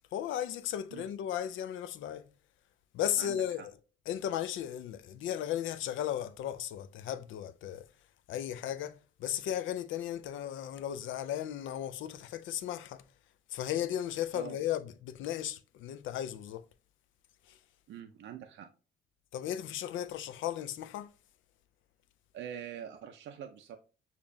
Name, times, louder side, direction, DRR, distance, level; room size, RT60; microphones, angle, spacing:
voice 1, 0.1-2.3 2.9-3.7 4.1-7.9 8.3-13.0 13.5-16.6 17.5-17.6 19.3-21.1, left 11 dB, 75° left, 0.5 m, -35 dB
voice 2, 3.2-3.7 14.3-14.6 17.9-18.7 22.3-23.8, right 9 dB, 70° right, 0.5 m, -44 dB
6.7 x 2.4 x 2.6 m
cardioid pair, 90°, 20 cm